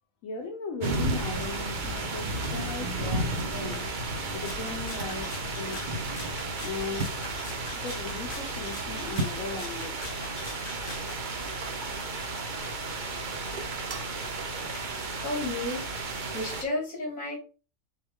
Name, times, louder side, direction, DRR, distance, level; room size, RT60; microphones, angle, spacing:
voice 1, 0.2-3.8 4.3-6.0 6.6-7.2 7.8-10.0, left 4 dB, 90° left, 1.3 m, -38 dB
sound 1, 0.8-16.6, right 2 dB, 45° right, 0.7 m, -33 dB
Ocean, 2.3-10.5, equal, 80° right, 1.7 m, -41 dB
Rattle (instrument), 4.4-11.2, left 3 dB, 45° left, 1.2 m, -44 dB
voice 2, 14.7-15.8 16.3-17.4, left 2 dB, 75° left, 2.8 m, -33 dB
6.2 x 2.3 x 3.6 m
omnidirectional pair, 1.4 m